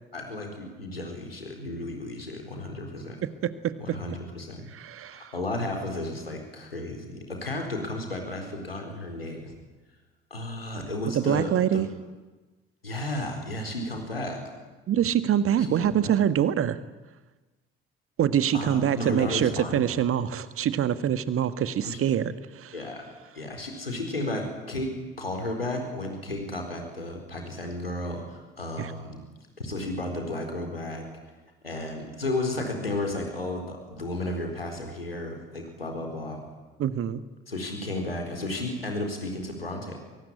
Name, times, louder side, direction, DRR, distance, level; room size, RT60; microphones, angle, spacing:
voice 1, 0.1-3.2 3.8-4.7 5.1-9.5 10.3-11.8 12.8-14.4 15.6-16.1 18.5-19.8 21.8-22.0 22.7-23.1 23.3-29.2 29.6-31.1 31.6-36.5 37.5-40.0, left 1 dB, 85° left, 3 dB, 4.2 m, -33 dB
voice 2, 3.2-4.0 4.7-5.3 11.2-11.9 14.9-16.8 18.2-22.7 28.8-28.9 36.8-37.2, right 9 dB, 50° right, 13 dB, 1.7 m, -25 dB
23.5 x 22.5 x 9.9 m, 1.2 s
figure-of-eight pair, 45°, 29 cm